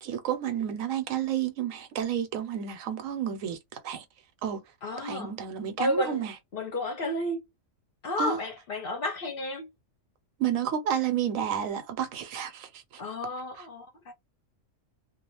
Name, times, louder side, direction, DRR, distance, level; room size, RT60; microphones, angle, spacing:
voice 1, 0.0-4.0 4.4-4.6 5.0-6.3 8.2-8.4 10.4-12.7, right 9 dB, 85° right, 1.1 m, -30 dB
voice 2, 4.8-5.3 5.8-7.5 8.0-9.7 13.0-14.1, left 1 dB, 55° left, 0.7 m, -32 dB
2.4 x 2.3 x 2.9 m
omnidirectional pair, 1.4 m